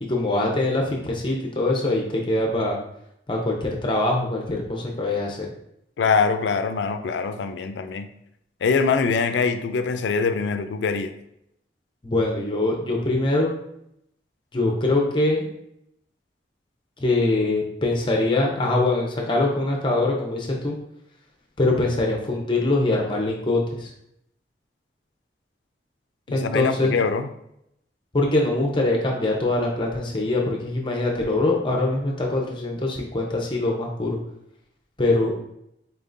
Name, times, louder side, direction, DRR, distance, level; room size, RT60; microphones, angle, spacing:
voice 1, 0.0-2.8 3.3-5.5 12.0-13.6 14.5-15.5 17.0-20.8 21.6-23.9 26.3-27.0 28.1-34.2 35.0-35.4, left 2 dB, 25° left, -1 dB, 0.6 m, -23 dB
voice 2, 6.0-8.1 8.6-11.1 26.3-27.3, left 5 dB, 85° left, 9 dB, 0.4 m, -23 dB
4.3 x 3.5 x 2.6 m, 0.78 s
head